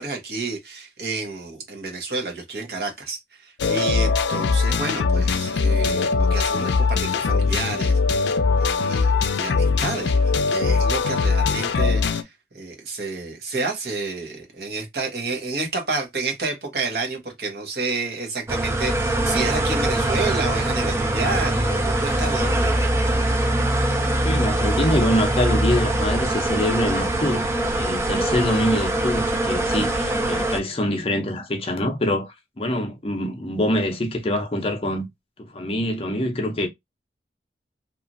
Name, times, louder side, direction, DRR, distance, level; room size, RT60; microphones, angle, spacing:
voice 1, 0.0-22.7, right 3 dB, 60° right, 1.0 m, -30 dB
sound 1, 3.6-12.2, left 4 dB, 85° left, 0.4 m, -21 dB
sound 2, 18.5-30.6, right 1 dB, 15° right, 0.4 m, -22 dB
voice 2, 24.2-35.1 35.4-36.7, left 1 dB, 35° left, 0.6 m, -25 dB
2.9 x 2.4 x 2.5 m
head